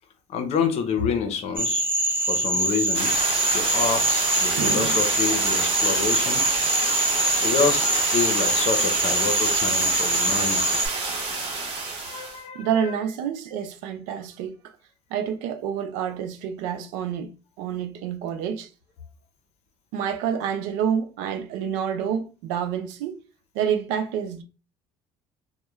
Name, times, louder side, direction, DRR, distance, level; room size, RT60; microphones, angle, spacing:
voice 1, 0.3-1.8 2.2-3.1 3.5-6.4 7.4-10.8 12.0-12.9, left 5 dB, 55° left, 0.7 m, -28 dB
Cricket / Frog, 1.6-10.9, right 1 dB, 15° right, 0.6 m, -24 dB
sound 1, 2.9-12.4, right 3 dB, 45° right, 0.9 m, -27 dB
voice 2, 4.5-5.1 12.5-14.6 15.1-17.3 17.6-18.7 19.9-23.2 23.5-24.4, right 8 dB, 85° right, 0.4 m, -28 dB
2.2 x 2.2 x 3.0 m
supercardioid pair, 90°, 13 cm